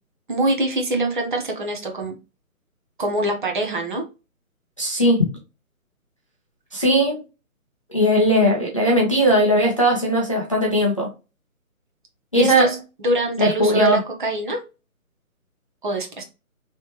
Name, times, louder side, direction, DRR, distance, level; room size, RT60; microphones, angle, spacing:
voice 1, 0.3-2.1 3.0-4.0 12.3-14.6 15.8-16.2, right 1 dB, 35° right, 2 dB, 0.8 m, -24 dB
voice 2, 4.8-5.2 6.7-7.2 7.9-11.1 12.3-12.8 13.4-14.0, equal, 25° left, -3 dB, 0.5 m, -18 dB
3.2 x 3.0 x 2.9 m, 0.30 s
figure-of-eight pair, 155°, 43 cm